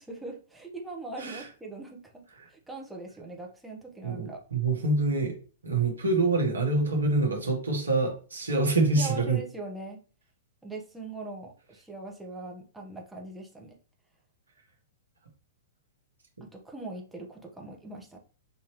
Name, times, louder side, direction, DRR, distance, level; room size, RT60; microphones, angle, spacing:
voice 1, 0.0-2.2 2.5-4.4 9.0-10.0 10.6-13.8 16.4-18.2, right 2 dB, 5° right, -1 dB, 1.1 m, -41 dB
voice 2, 4.0-5.3 5.6-9.4, right 3 dB, 80° right, 1 dB, 1.5 m, -26 dB
6.0 x 2.9 x 3.1 m, 0.37 s
figure-of-eight pair, 105°, 0 cm